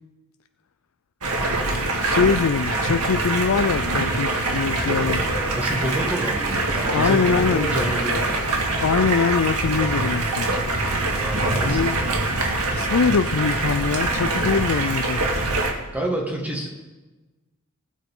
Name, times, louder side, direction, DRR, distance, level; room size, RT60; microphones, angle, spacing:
Stream, 1.2-15.7, right 2 dB, 80° right, 1.9 m, -24 dB
voice 1, 2.0-5.2 6.9-7.7 8.1-8.3 8.8-10.5 11.6-11.9 12.7-15.2, left 5 dB, 65° left, 10 dB, 0.4 m, -23 dB
voice 2, 5.5-8.4 11.2-11.9 15.9-16.7, right 1 dB, 5° right, -2 dB, 1.8 m, -28 dB
19.5 x 8.4 x 3.8 m, 1.2 s
head